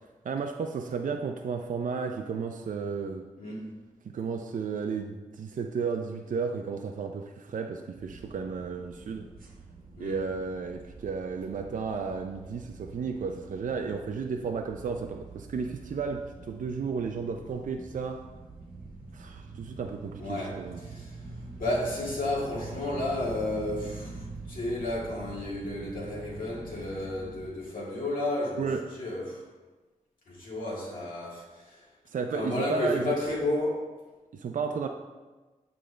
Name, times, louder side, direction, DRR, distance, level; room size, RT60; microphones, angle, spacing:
voice 1, 0.2-3.3 4.1-9.3 10.0-18.2 19.1-20.8 28.6-28.8 32.1-33.1 34.3-34.9, right 5 dB, 65° right, 4 dB, 0.5 m, -33 dB
voice 2, 3.4-3.7 10.0-10.2 20.2-21.2 21.5-28.7 28.9-29.4 30.3-31.8 32.3-33.9, left 1 dB, 75° left, -5 dB, 2.1 m, -32 dB
sound 1, 7.9-27.5, right 3 dB, 85° right, 1.2 m, -45 dB
7.8 x 5.1 x 3.3 m, 1.2 s
cardioid pair, 55°, 14 cm